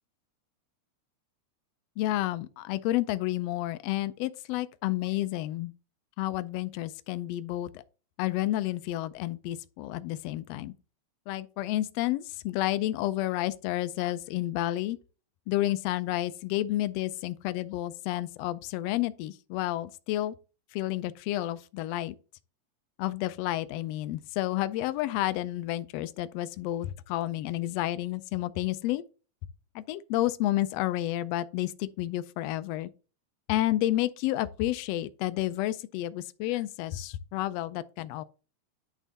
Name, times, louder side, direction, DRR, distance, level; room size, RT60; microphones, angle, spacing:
voice 1, 2.0-5.7 6.2-7.8 8.2-10.7 11.3-15.0 15.5-20.3 20.7-22.1 23.0-29.0 29.7-32.9 33.5-38.2, left 15 dB, 80° left, 1.5 m, -30 dB
10.5 x 3.6 x 4.0 m
omnidirectional pair, 3.3 m